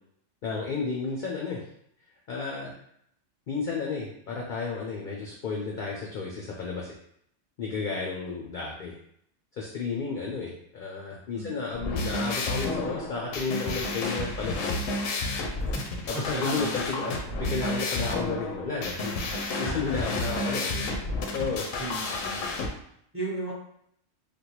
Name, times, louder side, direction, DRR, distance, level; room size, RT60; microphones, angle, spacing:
voice 1, 0.4-1.6 2.3-2.7 3.5-7.0 7.6-9.0 9.5-14.7 16.1-17.1 17.5-20.7 21.3-21.7, left 4 dB, 60° left, -2 dB, 0.5 m, -32 dB
sound 1, 11.7-22.7, left 2 dB, 85° left, 1.0 m, -31 dB
voice 2, 16.1-17.1 19.6-21.0 21.8-22.5 23.1-23.5, right 1 dB, 10° right, -6 dB, 0.7 m, -36 dB
3.4 x 2.3 x 2.9 m, 0.71 s
omnidirectional pair, 1.3 m